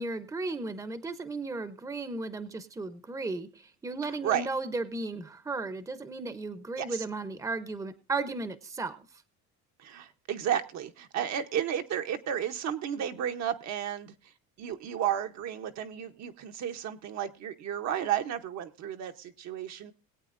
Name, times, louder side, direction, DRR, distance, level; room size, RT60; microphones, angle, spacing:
voice 1, 0.0-9.0, right 3 dB, 10° right, 13 dB, 0.7 m, -35 dB
voice 2, 9.8-14.1 14.6-19.9, right 10 dB, 55° right, 6 dB, 0.9 m, -32 dB
21.0 x 8.4 x 2.5 m, 0.32 s
cardioid pair, 105°, 32 cm